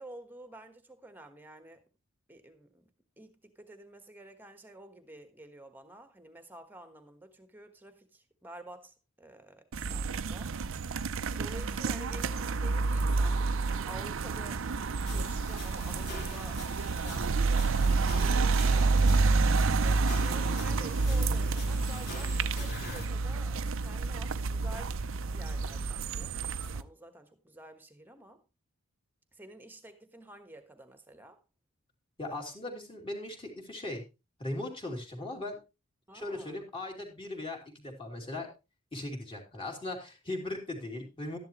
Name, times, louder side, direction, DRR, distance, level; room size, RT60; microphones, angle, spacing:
voice 1, 0.0-1.8 2.3-2.9 3.2-10.6 11.3-14.6 15.1-19.0 19.8-25.0 25.3-28.4 29.3-31.4 36.1-36.6, right 1 dB, 10° right, 1.3 m, -50 dB
sound 1, 9.7-26.8, right 4 dB, 60° right, 0.5 m, -29 dB
sound 2, 15.1-23.1, left 1 dB, 45° left, 2.5 m, -42 dB
voice 2, 32.2-34.0 34.4-35.6 36.1-38.5 38.9-41.4, left 2 dB, 25° left, 2.9 m, -38 dB
12.5 x 10.5 x 3.1 m
head